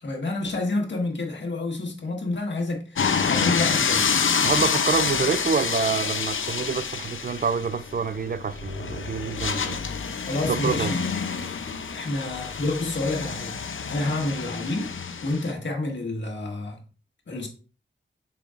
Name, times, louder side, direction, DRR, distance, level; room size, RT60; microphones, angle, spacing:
voice 1, 0.0-4.1 10.2-11.0 11.3-11.6 11.9-13.5 13.8-14.9 15.2-16.8 17.3-17.5, left 2 dB, 65° left, 1.7 m, -29 dB
sound 1, 3.0-15.5, left 6 dB, 80° left, 0.7 m, -27 dB
voice 2, 4.4-9.8 10.5-10.9, right 5 dB, 50° right, 0.4 m, -27 dB
6.8 x 5.7 x 2.5 m
wide cardioid pair, 75°, 20 cm